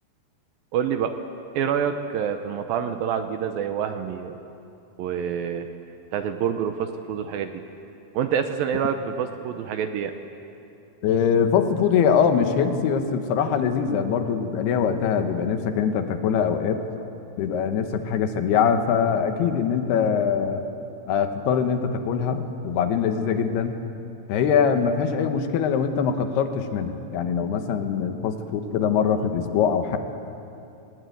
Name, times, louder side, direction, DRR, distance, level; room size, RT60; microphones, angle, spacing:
voice 1, 0.7-1.1 1.6-4.4 5.0-5.7 6.1-7.6 8.1-10.1, right 8 dB, 75° right, 7 dB, 2.3 m, -27 dB
voice 2, 11.0-16.8 17.4-20.7 21.1-23.7 24.3-30.0, left 7 dB, 75° left, 7 dB, 3.1 m, -23 dB
19.5 x 19.5 x 9.3 m, 2.7 s
omnidirectional pair, 4.8 m